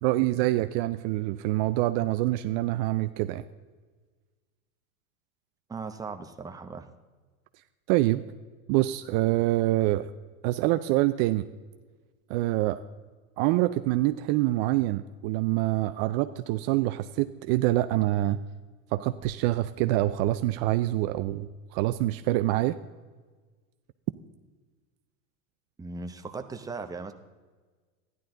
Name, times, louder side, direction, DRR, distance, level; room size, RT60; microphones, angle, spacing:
voice 1, 0.0-3.4 7.9-8.2 8.7-10.1 10.4-11.5 12.3-12.8 13.4-18.4 18.9-22.8, right 16 dB, 50° right, 11 dB, 0.5 m, -26 dB
voice 2, 5.7-6.9 25.8-27.1, right 4 dB, 10° right, 6 dB, 0.8 m, -38 dB
13.0 x 11.0 x 3.8 m, 1.4 s
hypercardioid pair, 110°, 42 cm